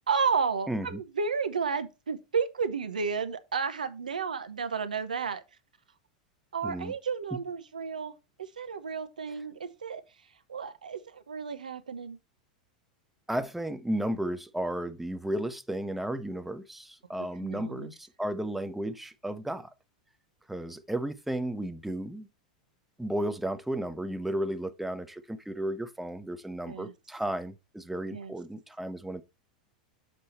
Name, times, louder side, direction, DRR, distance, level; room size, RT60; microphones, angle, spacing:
voice 1, 0.1-5.4 6.5-10.0 10.5-12.2 17.4-17.9 26.7-26.9 28.1-28.3, right 5 dB, 90° right, 1.0 m, -32 dB
voice 2, 0.7-1.0 6.6-6.9 7.3-7.4 13.3-19.7 20.5-22.3 23.0-29.2, right 1 dB, 5° right, 0.9 m, -33 dB
6.7 x 5.3 x 4.4 m
hypercardioid pair, 100°, 4 cm